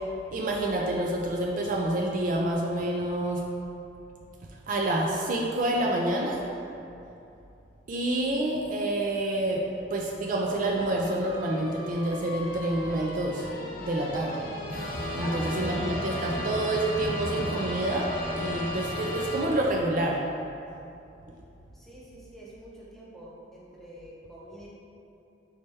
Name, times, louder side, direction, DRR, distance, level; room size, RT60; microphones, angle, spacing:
voice 1, 0.3-3.5 4.7-6.4 7.9-13.5 13.8-14.5 15.1-20.2, right 1 dB, 45° right, -1 dB, 0.3 m, -28 dB
sound 1, 10.6-20.1, left 1 dB, 50° left, 0.6 m, -35 dB
voice 2, 15.1-16.6 21.7-24.7, right 1 dB, ahead, -7 dB, 0.6 m, -45 dB
4.1 x 3.2 x 3.4 m, 2.7 s
head